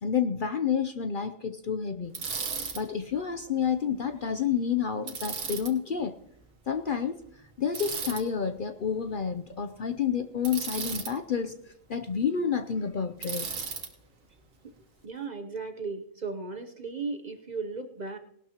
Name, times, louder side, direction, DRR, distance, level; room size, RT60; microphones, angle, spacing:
voice 1, 0.0-2.1 2.7-6.1 6.7-7.2 7.6-11.6 11.9-13.5, left 7 dB, 50° left, 8 dB, 0.7 m, -29 dB
Bicycle, 2.1-2.8 5.1-5.7 7.7-8.2 10.4-11.1 13.2-13.9, right 5 dB, 80° right, 1.6 m, -34 dB
voice 2, 15.0-18.2, right 4 dB, 40° right, 8 dB, 0.8 m, -36 dB
19.5 x 12.0 x 2.9 m, 0.73 s
omnidirectional pair, 1.3 m